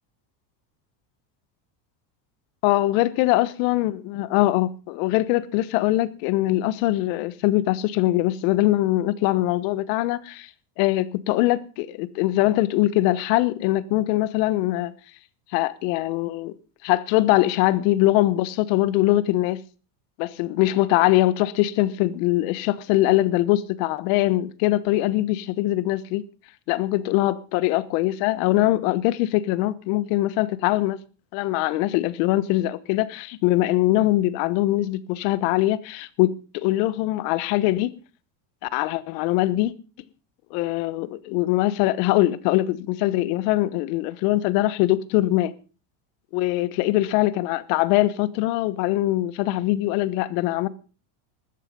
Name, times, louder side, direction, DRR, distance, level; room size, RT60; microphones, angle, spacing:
voice 1, 2.6-10.5 10.8-14.9 15.5-16.5 16.8-19.6 20.2-26.2 26.7-31.0 31.3-37.9 38.6-39.7 40.5-45.5 46.3-50.7, left 16 dB, 70° left, 1.3 m, -22 dB
15.0 x 13.0 x 5.3 m
cardioid pair, 145°, 50 cm